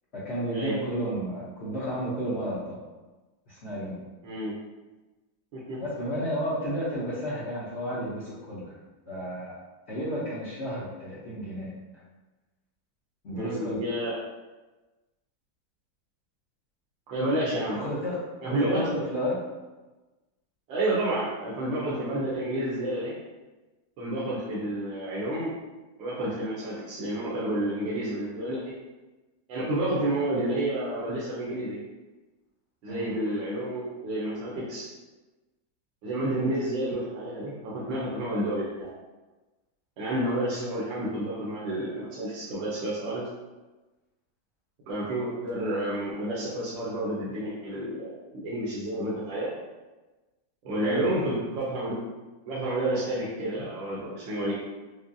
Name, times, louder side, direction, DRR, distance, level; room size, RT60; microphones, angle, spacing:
voice 1, 0.1-2.8 3.5-4.0 5.8-8.7 9.1-9.6 9.9-11.7 13.2-13.8 17.7-19.4 32.9-33.1 50.8-51.2, equal, 55° left, -10 dB, 0.8 m, -32 dB
voice 2, 13.3-14.1 17.1-17.8 18.4-18.8 20.7-23.1 24.0-25.5 26.0-28.6 29.5-31.8 32.8-34.9 36.0-38.9 40.0-43.2 44.9-49.5 50.6-52.0 52.5-54.5, right 1 dB, 80° right, -8 dB, 1.5 m, -30 dB
4.8 x 2.0 x 2.6 m, 1.2 s
omnidirectional pair, 2.0 m